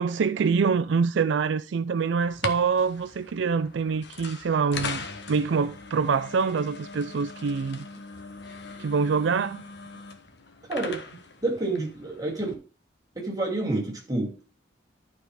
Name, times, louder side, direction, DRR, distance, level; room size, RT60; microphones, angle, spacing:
voice 1, 0.0-7.8 8.8-9.6, right 5 dB, 70° right, 0.4 m, -25 dB
sound 1, 2.2-12.5, left 4 dB, 60° left, 1.2 m, -40 dB
voice 2, 10.7-12.6 13.2-14.4, right 2 dB, 20° right, 2.5 m, -29 dB
11.5 x 4.8 x 4.8 m
head